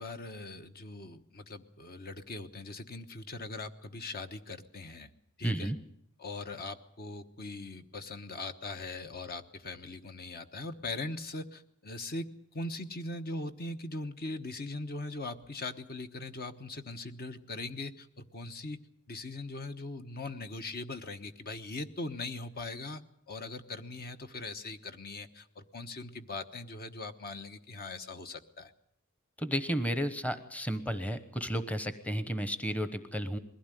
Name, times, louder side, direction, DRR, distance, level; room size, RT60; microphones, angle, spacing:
voice 1, 0.0-5.1 5.4-5.7 6.2-12.3 12.5-18.8 19.1-23.0 23.3-28.7, left 2 dB, 45° left, 8 dB, 1.2 m, -40 dB
voice 2, 5.4-5.8 29.4-33.4, equal, 5° left, 11 dB, 1.0 m, -33 dB
21.5 x 16.0 x 9.2 m, 0.70 s
head